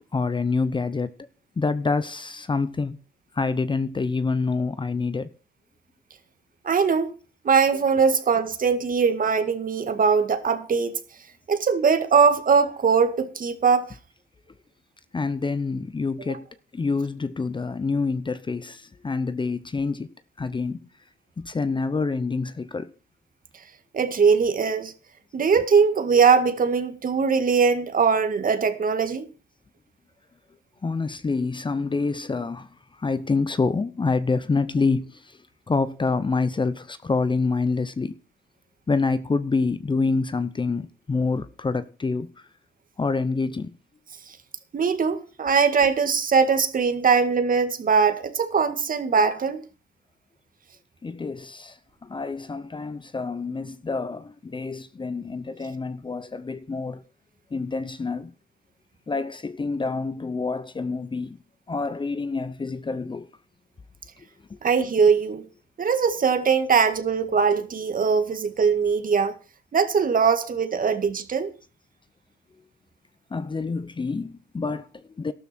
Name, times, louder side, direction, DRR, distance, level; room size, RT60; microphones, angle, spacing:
voice 1, 0.1-1.1 1.6-3.0 3.4-5.3 15.1-16.5 16.7-20.1 20.4-20.8 21.4-22.9 30.8-32.7 33.0-35.4 35.7-38.1 38.9-42.3 43.0-43.7 51.0-51.8 52.0-57.0 57.5-58.3 59.1-61.4 61.7-63.3 73.3-75.3, left 4 dB, 25° left, 0.8 m, -27 dB
voice 2, 6.6-7.1 7.4-11.0 11.5-14.0 16.3-16.4 23.9-24.9 25.3-29.3 44.7-49.6 64.6-65.5 65.8-69.3 69.7-71.5, right 5 dB, 45° right, 2.0 m, -21 dB
13.0 x 12.5 x 4.4 m
cardioid pair, 90°, 20 cm